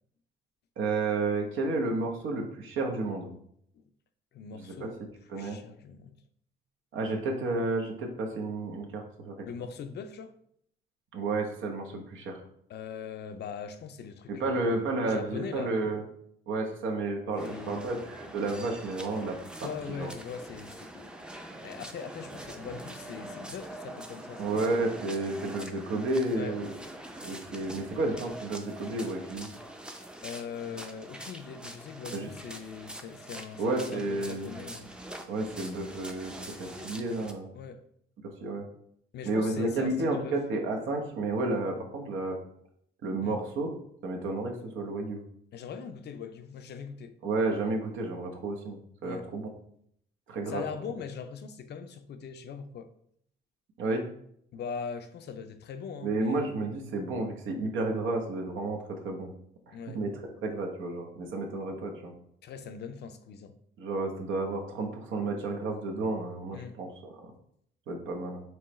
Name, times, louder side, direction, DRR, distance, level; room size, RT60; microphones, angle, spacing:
voice 1, 0.8-3.3 4.6-4.9 5.3-5.6 6.9-9.3 11.1-12.4 14.3-16.0 16.5-19.7 20.0-20.1 24.4-26.7 27.2-29.5 32.1-32.3 33.6-34.5 35.3-37.5 38.2-38.6 39.2-42.4 43.0-43.7 44.0-45.2 47.2-49.5 50.3-50.6 53.8-54.0 56.0-59.3 59.7-60.1 60.4-62.1 63.8-67.3 67.9-68.4, right 2 dB, 80° right, 1.0 m, -31 dB
voice 2, 4.3-5.0 5.3-6.2 7.1-7.2 9.4-10.3 12.7-15.8 17.4-17.9 19.6-21.2 21.6-24.8 26.3-26.6 30.2-34.9 37.5-37.8 39.1-40.7 43.2-43.4 45.5-47.2 49.0-49.3 50.5-52.9 54.5-56.5 59.7-60.0 62.4-63.5 66.5-66.8, left 6 dB, 60° left, 0.5 m, -41 dB
sound 1, 17.4-37.3, right 1 dB, 5° right, 0.5 m, -44 dB
4.5 x 3.3 x 3.1 m
cardioid pair, 90°, 20 cm